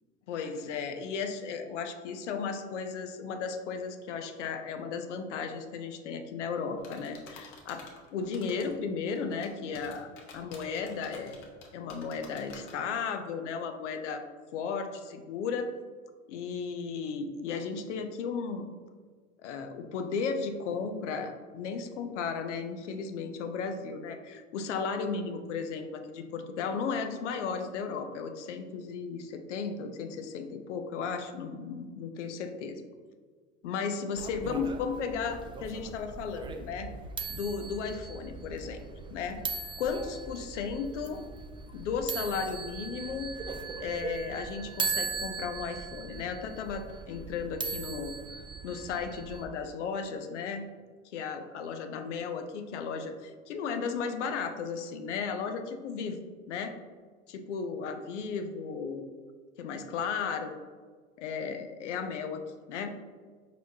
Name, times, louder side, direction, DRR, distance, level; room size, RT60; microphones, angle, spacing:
voice 1, 0.3-7.8 8.1-11.4 11.7-14.2 14.5-15.7 16.3-18.7 19.4-32.8 33.6-36.9 37.3-38.8 39.1-39.4 39.8-41.2 41.7-43.3 43.8-48.1 48.6-50.7 51.1-56.7 57.3-59.1 59.6-60.5 61.2-62.4 62.7-62.9, left 5 dB, 80° left, 6 dB, 0.6 m, -35 dB
sound 1, 6.8-8.7 9.1-12.7, left 4 dB, 55° left, 1.1 m, -49 dB
sound 2, 34.2-49.5, right 5 dB, 15° right, 0.3 m, -39 dB
4.7 x 4.1 x 2.7 m, 1.5 s
hypercardioid pair, 80°, 35 cm